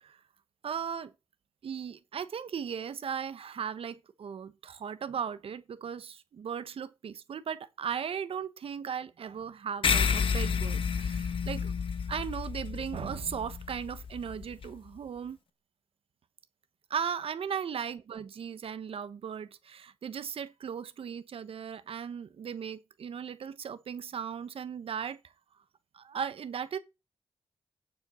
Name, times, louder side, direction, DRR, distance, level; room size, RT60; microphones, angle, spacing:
voice 1, 0.6-1.1 1.6-11.8 12.1-15.4 16.9-25.2 25.9-26.8, right 7 dB, 75° right, 1.1 m, -37 dB
sound 1, 9.8-14.7, left 6 dB, 65° left, 1.0 m, -30 dB
9.5 x 7.6 x 4.4 m
wide cardioid pair, 165°, 10 cm